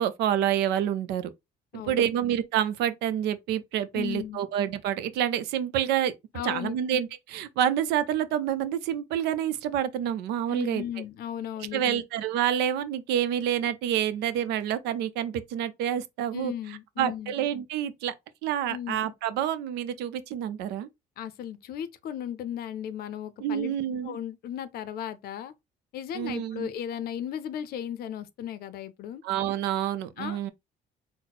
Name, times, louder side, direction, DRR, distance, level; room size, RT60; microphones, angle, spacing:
voice 1, 0.0-1.3 1.9-6.1 6.4-10.8 11.7-16.5 17.0-18.1 18.4-20.9 23.4-24.2 26.1-26.7 29.2-30.5, right 10 dB, 85° right, 0.5 m, -28 dB
voice 2, 1.7-2.1 3.9-4.4 6.3-6.8 10.5-12.0 16.3-17.3 18.7-19.0 21.2-23.8 24.0-25.5 25.9-29.2 30.2-30.5, left 9 dB, 65° left, 0.5 m, -36 dB
4.1 x 2.0 x 4.1 m
cardioid pair, 110°, 17 cm